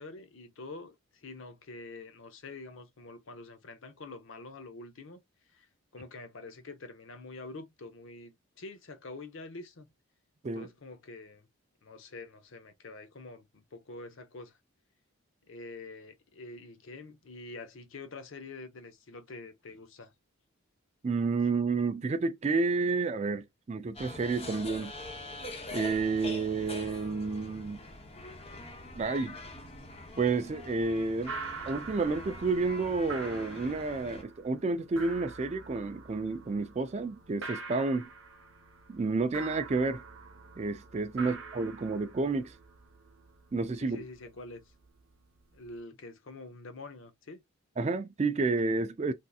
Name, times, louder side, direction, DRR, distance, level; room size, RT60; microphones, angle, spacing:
voice 1, 0.0-5.2 5.5-5.7 5.9-9.9 10.5-11.5 11.8-14.6 15.4-20.1 41.2-41.4 43.8-44.7 45.5-47.4, left 3 dB, 60° left, 0.6 m, -46 dB
voice 2, 21.0-24.9 25.7-27.8 29.0-29.4 30.2-31.3 31.6-38.1 38.9-40.0 40.6-42.5 43.5-44.0 47.8-49.1, right 3 dB, 30° right, 0.3 m, -30 dB
sound 1, 23.9-34.2, left 2 dB, 25° left, 0.7 m, -44 dB
sound 2, 31.3-45.8, right 4 dB, 65° right, 0.8 m, -46 dB
3.4 x 2.7 x 2.3 m
head